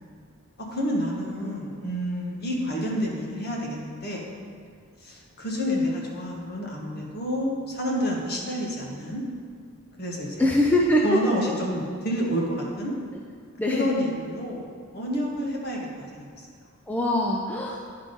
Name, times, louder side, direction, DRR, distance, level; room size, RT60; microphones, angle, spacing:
voice 1, 0.7-4.2 5.0-9.2 10.0-10.5 11.0-12.9 13.7-16.2, equal, 45° left, -2 dB, 1.3 m, -29 dB
voice 2, 10.4-11.2 13.6-13.9 16.9-17.8, left 1 dB, 5° left, -2 dB, 0.4 m, -23 dB
9.7 x 3.8 x 5.2 m, 2.1 s
head